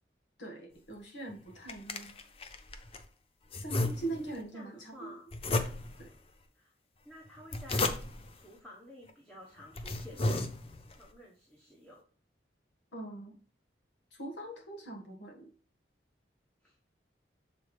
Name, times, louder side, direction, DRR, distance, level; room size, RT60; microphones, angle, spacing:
voice 1, 0.4-2.1 3.6-5.1 6.0-6.1 12.9-13.3 14.2-15.5, right 2 dB, 80° left, 0 dB, 1.7 m, -42 dB
sound 1, 1.3-3.1 3.5-4.4 5.3-6.1 7.3-8.3 9.1-9.2 9.6-11.0, left 2 dB, 30° left, 0.5 m, -34 dB
voice 2, 3.9-5.3 6.5-6.7 7.0-8.0 8.3-10.4 11.0-12.0 16.6-16.8, left 1 dB, 5° left, -5 dB, 1.1 m, -52 dB
6.9 x 4.2 x 3.3 m, 0.43 s
head